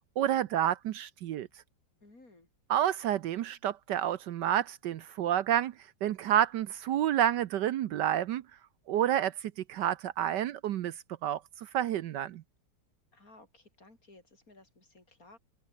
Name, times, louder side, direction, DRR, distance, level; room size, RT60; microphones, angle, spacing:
voice 1, 0.2-1.5 2.7-5.7 6.0-8.4 8.9-10.9 11.2-12.4, right 11 dB, 70° right, 1.3 m, -29 dB
voice 2, 2.0-2.5 13.1-15.4, left 2 dB, 45° left, 5.7 m, -57 dB
omnidirectional pair, 2.0 m